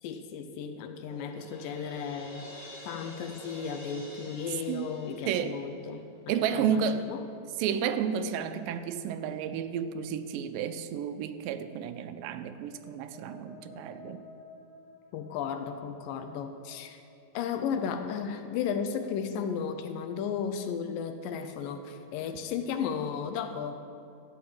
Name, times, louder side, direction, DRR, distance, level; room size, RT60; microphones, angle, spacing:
voice 1, 0.0-7.3 15.1-17.0 17.3-23.8, left 7 dB, 80° left, 7 dB, 2.4 m, -35 dB
Crash cymbal, 1.1-6.0, equal, 25° left, 1.6 m, -48 dB
voice 2, 6.3-7.1 7.6-14.2, right 8 dB, 85° right, 10 dB, 2.2 m, -31 dB
sound 1, 12.0-17.8, left 3 dB, 65° left, 2.5 m, -54 dB
14.0 x 5.0 x 8.7 m, 2.5 s
omnidirectional pair, 3.9 m